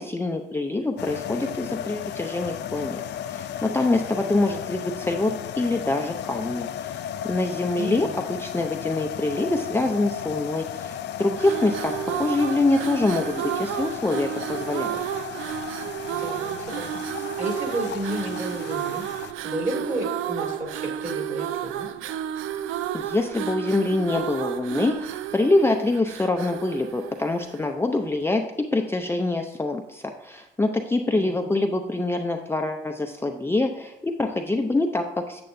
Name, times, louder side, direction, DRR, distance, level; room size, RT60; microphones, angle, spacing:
voice 1, 0.0-3.0 3.3-15.0 22.9-28.4 28.7-35.4, left 2 dB, 10° left, 3 dB, 0.5 m, -25 dB
sound 1, 1.0-19.3, left 10 dB, 60° left, 0.4 m, -35 dB
voice 2, 7.8-8.2 16.1-19.1 19.4-21.9 31.1-31.7, right 1 dB, 40° right, 1 dB, 2.2 m, -32 dB
sound 2, 11.3-27.8, right 11 dB, 90° right, 0.4 m, -32 dB
8.6 x 7.5 x 2.6 m, 0.96 s
cardioid pair, 90°, 20 cm